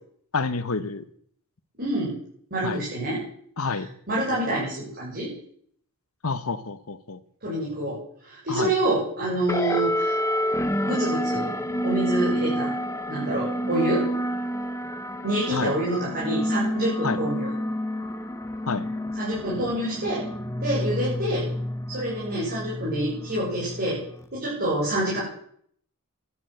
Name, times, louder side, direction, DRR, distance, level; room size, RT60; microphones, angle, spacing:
voice 1, 0.3-1.0 2.6-2.8 3.6-3.9 6.2-7.2 8.5-8.8 15.5-15.8 17.0-17.2 18.7-18.9, left 4 dB, 70° left, 12 dB, 1.2 m, -28 dB
voice 2, 1.8-2.1 2.5-3.2 4.1-5.3 7.4-8.0 8.2-10.2 10.8-11.5 11.8-12.7 13.1-14.1 15.2-17.5 19.2-20.2 20.6-21.5 21.9-24.0 24.3-25.2, right 1 dB, 45° right, -7 dB, 7.2 m, -27 dB
sound 1, 9.5-24.2, equal, 15° left, 1.1 m, -29 dB
12.5 x 12.0 x 7.9 m, 0.64 s
head